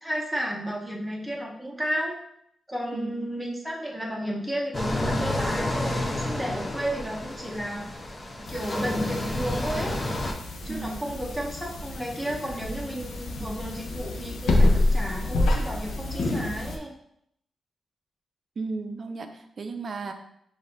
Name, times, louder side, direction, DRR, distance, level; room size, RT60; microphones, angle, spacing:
voice 1, 0.0-2.1 2.7-7.9 8.4-10.0 10.6-16.9, equal, 5° right, -2 dB, 1.0 m, -33 dB
voice 2, 2.9-3.3 10.7-11.1 13.4-13.5 18.6-20.1, right 3 dB, 50° right, 6 dB, 0.5 m, -34 dB
sound 1, 4.7-10.3, left 1 dB, 25° left, 0.7 m, -30 dB
sound 2, 8.5-16.8, left 2 dB, 85° left, 0.7 m, -28 dB
5.1 x 2.6 x 3.9 m, 0.73 s
cardioid pair, 95°, 0 cm